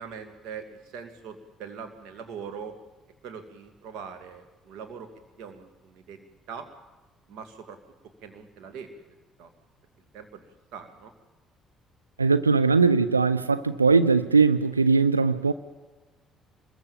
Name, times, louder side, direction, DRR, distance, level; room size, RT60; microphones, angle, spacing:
voice 1, 0.0-2.8 3.2-5.1 5.4-6.7 7.3-7.8 8.2-9.0 9.4-9.5 10.1-11.1, right 6 dB, 60° right, 2.6 m, -42 dB
voice 2, 12.2-15.5, right 4 dB, 85° right, 0.7 m, -20 dB
25.5 x 22.0 x 7.3 m
figure-of-eight pair, 50°, 0 cm